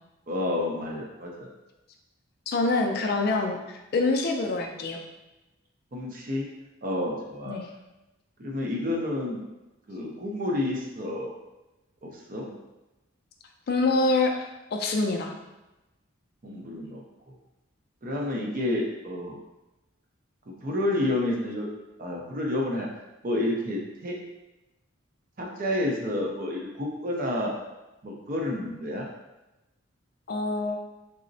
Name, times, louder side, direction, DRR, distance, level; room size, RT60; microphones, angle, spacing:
voice 1, 0.3-1.5 5.9-6.5 6.8-7.6 8.4-9.4 9.9-11.4 12.0-12.5 16.4-17.0 18.0-19.4 20.5-21.7 22.0-22.9 23.2-24.2 25.4-27.5 28.0-29.1, left 1 dB, 40° right, -1 dB, 0.5 m, -29 dB
voice 2, 2.5-5.0 7.4-7.7 13.7-15.3 30.3-30.8, left 3 dB, 50° left, 3 dB, 0.3 m, -26 dB
3.7 x 2.0 x 2.6 m, 1.0 s
head